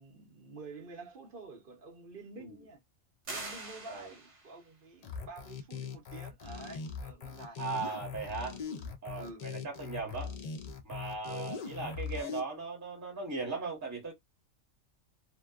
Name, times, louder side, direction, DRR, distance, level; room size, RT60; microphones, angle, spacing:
voice 1, 0.0-2.8 3.3-7.9 8.6-8.8 9.1-9.7 11.2-11.6, right 3 dB, 50° right, 0.8 m, -49 dB
sound 1, 3.2-4.6, right 3 dB, 70° right, 1.2 m, -43 dB
sound 2, 5.0-12.4, left 6 dB, 85° left, 0.3 m, -41 dB
voice 2, 7.6-8.6 9.0-10.4 10.8-14.1, right 4 dB, 15° right, 0.9 m, -38 dB
2.7 x 2.2 x 2.3 m
omnidirectional pair, 1.3 m